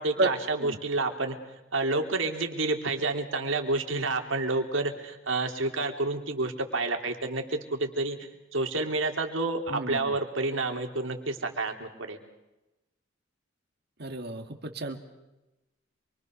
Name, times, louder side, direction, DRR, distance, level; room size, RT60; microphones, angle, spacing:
voice 1, 0.0-1.4 1.7-8.2 8.5-12.2, right 2 dB, 75° right, 4 dB, 3.4 m, -29 dB
voice 2, 9.7-10.2 14.0-15.0, right 2 dB, 55° right, 5 dB, 2.4 m, -31 dB
28.0 x 24.0 x 6.7 m, 0.99 s
head